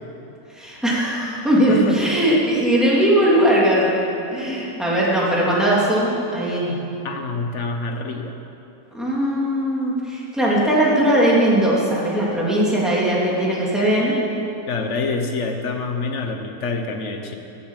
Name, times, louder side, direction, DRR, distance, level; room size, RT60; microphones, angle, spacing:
voice 1, 0.5-4.0 4.3-6.8 8.9-14.2, right 1 dB, ahead, -6 dB, 3.0 m, -19 dB
voice 2, 1.7-2.0 7.0-8.4 14.7-17.4, left 3 dB, 50° left, 5 dB, 1.4 m, -26 dB
16.0 x 8.6 x 7.5 m, 2.9 s
omnidirectional pair, 1.7 m